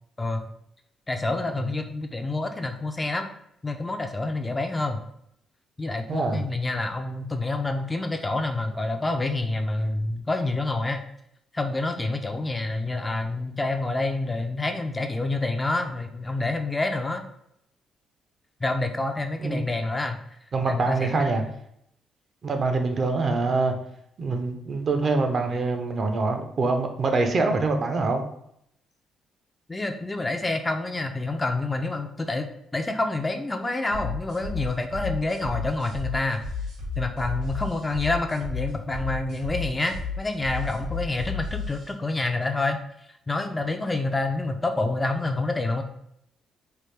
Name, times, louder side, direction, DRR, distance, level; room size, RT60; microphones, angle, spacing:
voice 1, 0.2-0.5 1.1-3.3 3.6-5.0 5.8-11.0 11.5-17.2 18.6-20.2 20.6-21.5 29.7-32.5 32.7-36.4 37.0-42.8 43.1-45.8, left 2 dB, 20° left, 5 dB, 0.4 m, -28 dB
voice 2, 6.1-6.4 19.4-19.7 20.5-21.4 22.4-23.7 24.2-28.2, right 3 dB, 45° right, 5 dB, 0.5 m, -25 dB
sound 1, 33.9-41.9, left 4 dB, 90° right, 1.5 m, -33 dB
3.3 x 2.2 x 3.2 m, 0.73 s
cardioid pair, 90°, 0 cm